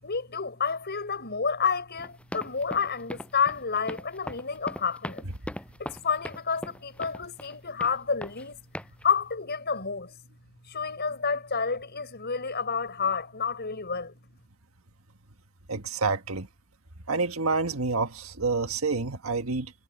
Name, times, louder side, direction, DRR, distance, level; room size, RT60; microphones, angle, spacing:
voice 1, 0.0-5.2 5.8-8.6 9.0-10.1 10.6-14.1, left 5 dB, 50° left, 5.9 m, -29 dB
sound 1, 2.0-7.6 7.8-8.5 8.7-9.0, equal, 5° left, 6.9 m, -39 dB
voice 2, 15.7-16.5 17.1-19.7, right 4 dB, 85° right, 1.6 m, -28 dB
head